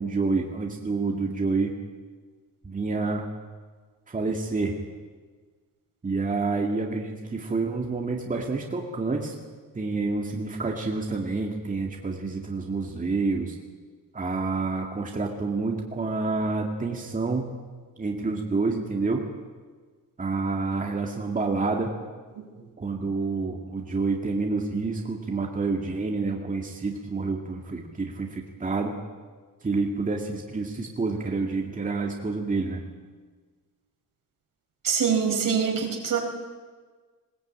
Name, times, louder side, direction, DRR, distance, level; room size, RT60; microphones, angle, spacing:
voice 1, 0.0-1.8 2.6-3.3 4.1-4.8 6.0-9.3 9.7-13.6 14.1-17.6 18.0-19.2 20.2-21.9 22.8-29.0 29.6-32.8, right 3 dB, 20° right, 1 dB, 2.2 m, -28 dB
voice 2, 34.8-36.2, right 7 dB, 65° right, 2 dB, 4.7 m, -24 dB
21.0 x 19.0 x 8.7 m, 1.4 s
wide cardioid pair, 140°, 35 cm